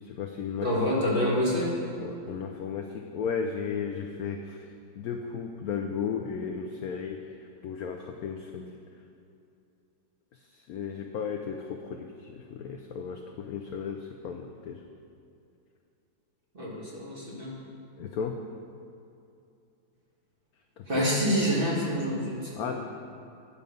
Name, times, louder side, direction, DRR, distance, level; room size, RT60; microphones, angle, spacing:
voice 1, 0.0-0.7 2.0-7.3 7.6-8.8 10.3-14.8 18.0-18.4 20.8-21.0 22.5-22.8, left 6 dB, 75° left, 4 dB, 0.8 m, -35 dB
voice 2, 0.6-1.8 16.5-17.6 20.9-22.8, equal, 30° right, -6 dB, 2.0 m, -27 dB
9.8 x 7.1 x 5.3 m, 2.7 s
omnidirectional pair, 2.1 m